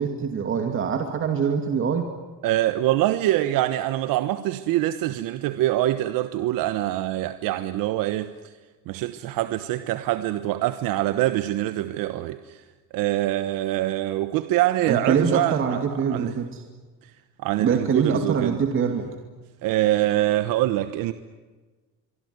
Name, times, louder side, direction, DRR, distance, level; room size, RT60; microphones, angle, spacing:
voice 1, 0.0-2.1 14.9-16.6 17.6-19.1, right 6 dB, 40° right, 2.5 m, -24 dB
voice 2, 2.4-8.5 8.9-12.6 12.9-15.8 16.1-16.3 17.4-18.6 19.6-21.1, right 15 dB, 85° right, 1.2 m, -24 dB
25.0 x 24.0 x 9.6 m
cardioid pair, 160°, 33 cm